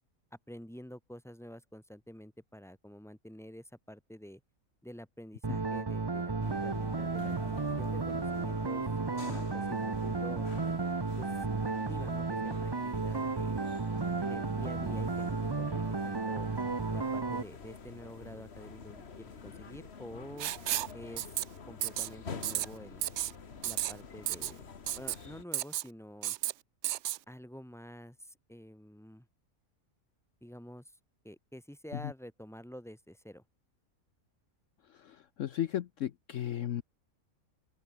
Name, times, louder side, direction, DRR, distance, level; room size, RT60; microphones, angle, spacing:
voice 1, 0.5-4.4 4.8-10.5 11.2-11.5 11.9-13.6 14.2-16.5 16.9-20.5 20.9-21.3 21.7-23.1 23.6-26.4 27.3-29.3 30.4-31.0 31.2-33.4, equal, ahead, 3.8 m, -49 dB
sound 1, 5.4-17.4, right 4 dB, 25° right, 0.6 m, -33 dB
sound 2, 6.4-25.4, left 5 dB, 45° left, 1.8 m, -48 dB
Writing, 20.4-20.9 21.2-21.4 21.8-22.1 22.4-22.7 23.0-23.3 23.6-23.9 24.3-24.5 24.9-25.2 25.5-25.9 26.2-26.5 26.8-27.2, right 13 dB, 65° right, 0.7 m, -32 dB
voice 2, 35.0-36.8, left 11 dB, 65° left, 1.0 m, -35 dB
open air
omnidirectional pair, 1.5 m